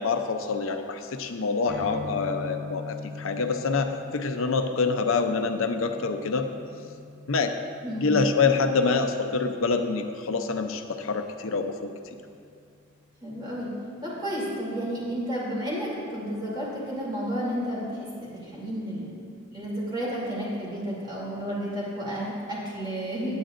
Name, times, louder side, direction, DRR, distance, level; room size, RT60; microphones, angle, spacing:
voice 1, 0.0-6.5 7.3-7.6 8.0-11.9, left 4 dB, 80° left, 6 dB, 0.6 m, -26 dB
sound 1, 1.7-9.3, left 3 dB, 55° right, 1.8 m, -42 dB
voice 2, 7.8-8.2 13.2-13.7 14.0-17.8 18.2-19.1 19.5-23.4, equal, 20° right, -6 dB, 2.8 m, -31 dB
17.5 x 8.8 x 2.5 m, 2.4 s
head